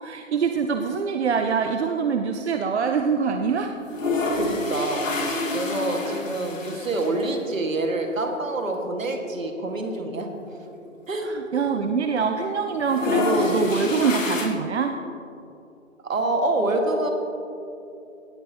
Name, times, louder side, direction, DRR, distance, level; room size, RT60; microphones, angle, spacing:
voice 1, 0.0-3.8 6.1-6.2 11.3-15.0, right 6 dB, 55° right, 6 dB, 0.6 m, -24 dB
sound 1, 3.7-7.3 7.7-7.8 8.0-8.1 9.0-9.2 9.6-9.7 9.9-11.8 12.1-12.4 12.7-14.5, left 3 dB, 70° left, 1.8 m, -27 dB
voice 2, 4.3-5.2 5.5-10.3 11.1-11.3 16.0-17.1, right 2 dB, 75° right, 3 dB, 1.8 m, -26 dB
17.0 x 9.2 x 2.8 m, 2.7 s
figure-of-eight pair, 145°, 40 cm